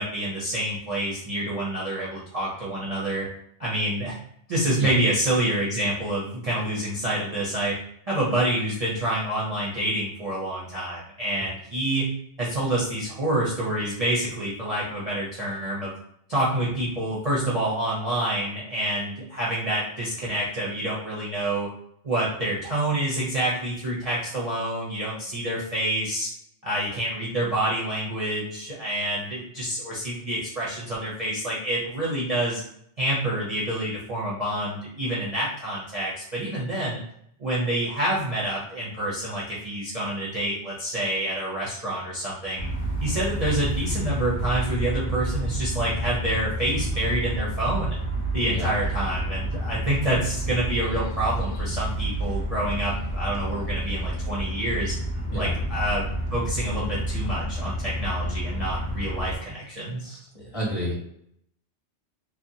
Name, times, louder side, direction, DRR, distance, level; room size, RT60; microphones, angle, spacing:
voice 1, 0.0-3.3 3.6-4.2 4.5-7.7 8.1-15.9 16.3-21.7 22.0-26.3 26.6-32.6 33.0-37.0 37.4-42.7 43.0-47.9 48.3-54.9 55.3-60.2, right 1 dB, 40° right, -7 dB, 0.6 m, -27 dB
sound 1, 42.6-59.4, right 1 dB, 70° left, 0.9 m, -29 dB
voice 2, 60.4-60.9, left 1 dB, 30° left, -6 dB, 0.9 m, -29 dB
2.8 x 2.1 x 2.6 m, 0.71 s
omnidirectional pair, 1.2 m